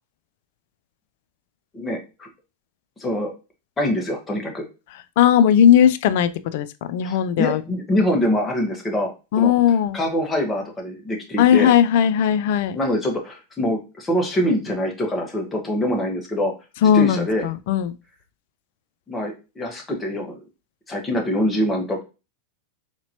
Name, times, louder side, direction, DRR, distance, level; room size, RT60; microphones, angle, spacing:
voice 1, 1.7-2.3 3.0-3.3 3.8-4.6 7.0-9.1 9.4-9.5 9.9-11.7 12.7-16.5 16.9-17.5 19.1-20.3 20.9-22.0, equal, 15° left, 1.3 m, -24 dB
voice 2, 5.2-7.6 9.3-10.0 11.4-12.8 16.8-17.9, left 9 dB, 65° left, 0.3 m, -17 dB
4.0 x 2.9 x 2.9 m
hypercardioid pair, 100°, 0 cm